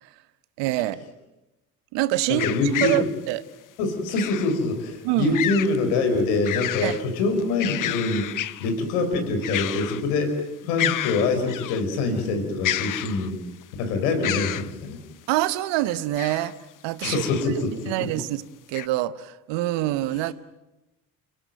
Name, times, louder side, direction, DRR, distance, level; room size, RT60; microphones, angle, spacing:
voice 1, 0.6-1.0 1.9-2.5 2.8-3.4 5.0-5.3 6.8-7.0 15.3-16.5 16.8-17.2 17.9-18.4 18.7-20.3, right 15 dB, 60° right, 16 dB, 1.2 m, -25 dB
voice 2, 2.3-3.0 3.8-8.2 8.6-13.4 13.8-15.0 17.0-17.9, left 3 dB, 70° left, 6 dB, 4.7 m, -25 dB
sound 1, 2.4-3.1 4.2-4.6 5.3-5.8 6.2-7.0 7.4-8.7 9.4-10.1 10.4-10.5 10.8-11.8 12.6-13.5 14.2-14.7 15.9-16.5 17.0-17.5 18.0-18.1 18.7-18.9, left 12 dB, 40° left, 0.9 m, -30 dB
29.5 x 17.0 x 9.1 m, 1.0 s
figure-of-eight pair, 50°, 48 cm